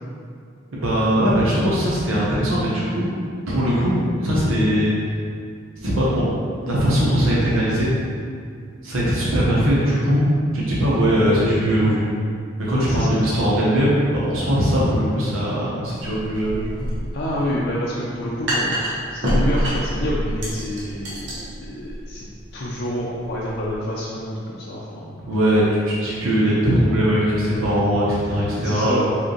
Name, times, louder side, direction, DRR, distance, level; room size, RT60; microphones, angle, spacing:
voice 1, 0.7-3.1 3.5-5.0 5.8-6.2 6.7-7.9 8.8-10.3 10.5-12.0 12.6-16.6 25.3-29.0, equal, 85° right, -7 dB, 1.0 m, -20 dB
voice 2, 12.7-13.2 17.1-18.7 19.1-25.2 28.5-29.1, equal, 50° left, -6 dB, 0.5 m, -28 dB
sound 1, 16.0-23.8, equal, 60° right, 1.1 m, -27 dB
4.8 x 3.5 x 3.1 m, 2.2 s
head